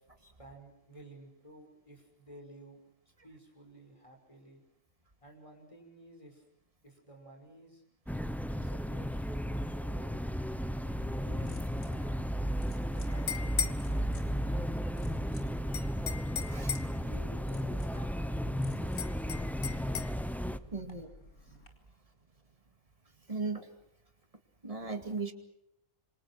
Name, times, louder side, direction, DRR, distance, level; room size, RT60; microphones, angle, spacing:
voice 1, 0.2-2.8 3.2-4.6 5.2-6.5 6.8-7.8 8.5-10.2 10.8-11.6 11.8-12.3 12.7-15.4 16.9-19.3, right 1 dB, 20° left, 3 dB, 5.7 m, -54 dB
sound 1, 8.1-20.6, equal, ahead, 0.5 m, -34 dB
sound 2, 11.3-21.7, left 3 dB, 90° left, 3.4 m, -56 dB
sound 3, 13.1-13.8 15.7-17.0 19.0-20.1, left 7 dB, 70° left, 1.5 m, -36 dB
voice 2, 20.7-21.1 21.5-21.6 23.3-23.7 24.6-25.3, right 4 dB, 25° right, 6 dB, 2.3 m, -37 dB
27.0 x 25.0 x 6.2 m, 0.81 s
omnidirectional pair, 1.5 m